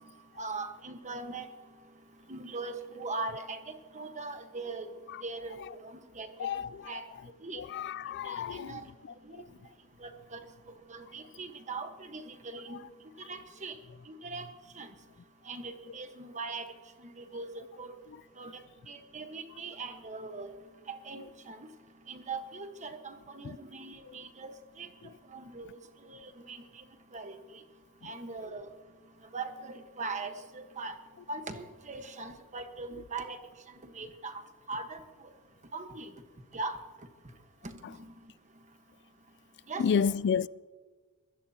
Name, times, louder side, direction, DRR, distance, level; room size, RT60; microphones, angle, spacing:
voice 1, 0.4-1.5 2.3-3.6 3.9-4.9 5.2-5.6 5.8-6.5 6.9-7.0 7.4-7.6 8.2-8.8 9.3-9.4 10.0-10.4 10.9-12.8 13.3-13.7 14.1-14.4 14.8-14.9 15.5-16.7 17.2-17.5 17.8-17.9 18.4-18.5 18.9-20.5 20.9-21.7 22.1-24.9 25.3-25.8 26.1-26.6 27.1-27.3 28.0-28.7 29.3-30.9 31.3-33.4 33.9-34.4 34.7-35.0 35.7-36.1 36.5-36.8 37.6-38.1 39.7-40.1, right 3 dB, 35° right, 1.3 m, -40 dB
voice 2, 7.5-8.8 23.4-23.6 24.1-24.2 28.0-28.1 39.8-40.5, left 7 dB, 50° left, 0.3 m, -30 dB
22.5 x 15.5 x 2.9 m
head